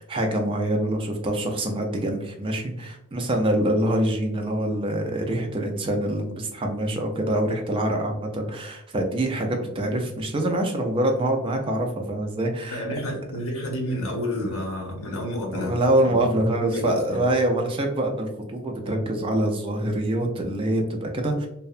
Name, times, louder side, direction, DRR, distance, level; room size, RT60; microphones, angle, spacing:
voice 1, 0.0-12.8 15.5-21.5, right 1 dB, 25° right, 3 dB, 0.3 m, -25 dB
voice 2, 12.7-15.7 16.0-16.2 16.6-17.2 18.8-19.1, left 1 dB, 65° left, -1 dB, 0.8 m, -30 dB
2.7 x 2.1 x 2.4 m, 0.84 s
head